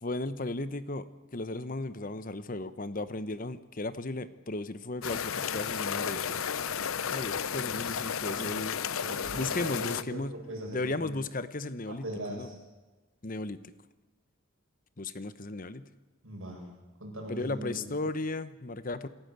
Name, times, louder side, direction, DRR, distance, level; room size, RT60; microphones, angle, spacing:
voice 1, 0.0-6.5 7.1-8.8 9.1-10.3 10.7-12.5 13.2-13.6 15.0-15.9 17.3-19.1, left 2 dB, 40° left, 13 dB, 0.9 m, -35 dB
sound 1, 5.0-10.0, left 7 dB, 75° left, 0.7 m, -33 dB
voice 2, 8.9-11.1 11.9-12.6 16.2-16.7 17.0-17.8, right 1 dB, 70° right, 0 dB, 7.5 m, -40 dB
27.5 x 15.0 x 8.1 m, 1.2 s
head